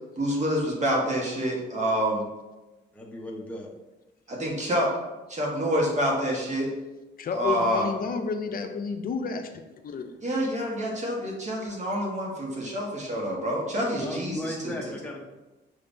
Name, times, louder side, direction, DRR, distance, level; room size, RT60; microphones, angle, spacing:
voice 1, 0.2-2.3 4.3-4.9 5.3-6.7 7.3-7.9 10.2-14.8, equal, 35° right, -2 dB, 1.3 m, -27 dB
voice 2, 2.9-3.7 14.0-15.2, left 1 dB, 5° left, -2 dB, 0.8 m, -35 dB
voice 3, 7.2-9.5 9.8-10.1, left 5 dB, 45° left, 6 dB, 0.6 m, -30 dB
5.7 x 3.3 x 2.6 m, 1.1 s
cardioid pair, 90°, 20 cm